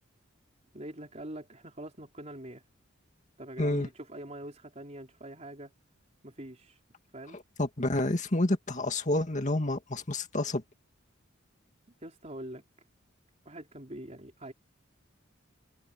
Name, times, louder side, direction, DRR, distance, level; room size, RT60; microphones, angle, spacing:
voice 1, 0.7-2.6 3.4-5.7 6.2-6.8 7.1-7.4 12.0-12.6 13.4-14.5, right 1 dB, 35° right, 4.6 m, -44 dB
voice 2, 3.6-3.9 7.3-10.6, left 1 dB, 35° left, 2.1 m, -29 dB
head